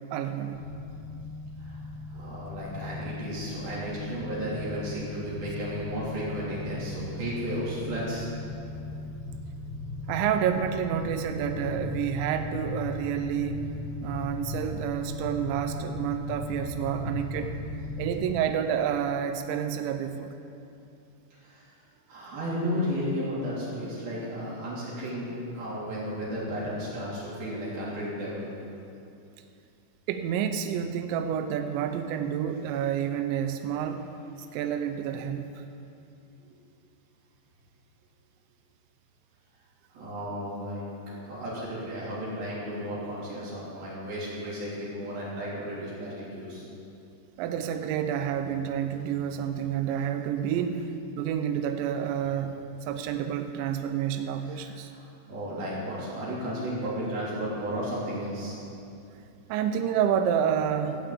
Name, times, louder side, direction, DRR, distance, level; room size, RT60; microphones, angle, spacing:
voice 1, 0.1-0.6 10.1-13.7 14.0-17.6 18.0-20.3 30.1-34.1 34.5-35.6 47.4-52.6 52.8-54.9 59.5-61.1, right 8 dB, 90° right, 7 dB, 2.6 m, -29 dB
sound 1, 0.5-18.2, left 2 dB, 55° left, 3.8 m, -37 dB
voice 2, 1.6-8.3 21.4-21.7 22.1-28.5 39.9-46.7 54.4-54.6 54.9-58.6, equal, 50° right, -7 dB, 4.8 m, -34 dB
15.0 x 5.8 x 8.4 m, 2.7 s
omnidirectional pair, 5.8 m